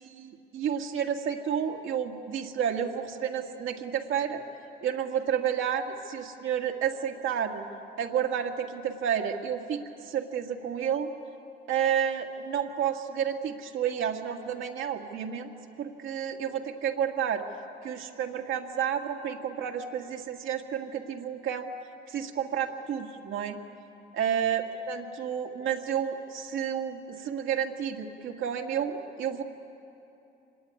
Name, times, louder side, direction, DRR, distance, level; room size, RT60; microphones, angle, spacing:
voice 1, 0.0-4.4 4.8-7.7 8.0-11.1 11.7-15.5 15.8-17.4 17.8-21.7 22.1-23.6 24.1-29.4, right 8 dB, 80° right, 3 dB, 1.9 m, -30 dB
25.5 x 20.0 x 9.5 m, 2.8 s
cardioid pair, 90°, 20 cm